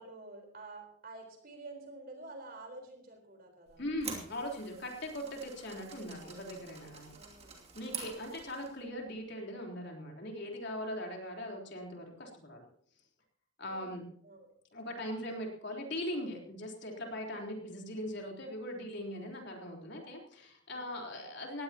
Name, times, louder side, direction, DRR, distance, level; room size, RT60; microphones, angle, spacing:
voice 1, 0.0-3.8 5.6-5.8 7.1-7.6 13.7-14.6 20.7-21.3, right 2 dB, 45° right, 3 dB, 4.2 m, -50 dB
sound 1, 3.7-8.8, right 6 dB, 30° right, 2.7 m, -47 dB
voice 2, 3.8-7.1 7.7-12.7 13.6-14.0 14.7-21.6, left 1 dB, 55° left, 0 dB, 3.8 m, -40 dB
20.0 x 16.0 x 3.0 m, 0.62 s
head